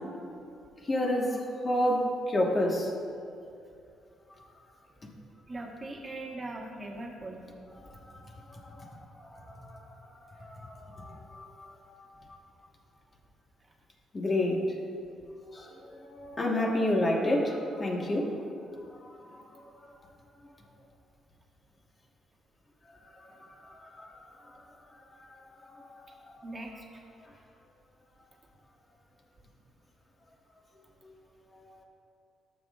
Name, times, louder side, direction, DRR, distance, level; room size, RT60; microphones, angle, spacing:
voice 1, 0.8-2.9 7.8-9.8 10.3-12.0 14.1-14.6 15.5-18.5 19.0-19.6 22.9-24.6 25.6-26.4 27.2-27.3, left 1 dB, 35° left, -1 dB, 1.6 m, -31 dB
voice 2, 5.5-7.4 26.4-27.0, right 2 dB, 30° right, -1 dB, 1.5 m, -40 dB
14.0 x 7.5 x 2.5 m, 2.5 s
cardioid pair, 90°, 0 cm